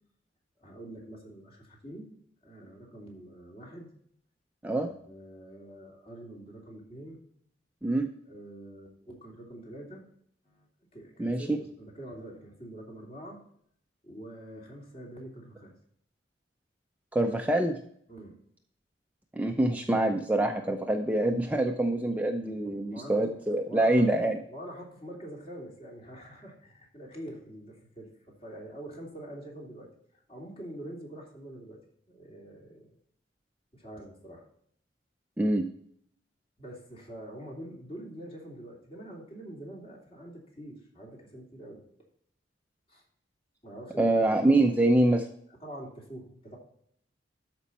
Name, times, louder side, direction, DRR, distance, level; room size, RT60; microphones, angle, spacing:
voice 1, 0.6-2.1 2.4-3.9 4.7-7.2 8.2-10.0 10.4-10.7 10.9-13.4 14.0-15.7 18.1-18.4 22.4-24.2 24.5-31.8 32.1-32.9 33.7-34.5 36.6-41.8 42.9-43.0 43.6-44.2 45.6-46.6, right 1 dB, 35° left, -1 dB, 3.0 m, -45 dB
voice 2, 11.2-11.6 17.1-17.8 19.3-24.4 35.4-35.7 44.0-45.3, right 1 dB, 10° right, 3 dB, 0.6 m, -25 dB
12.5 x 5.3 x 4.2 m, 0.66 s
head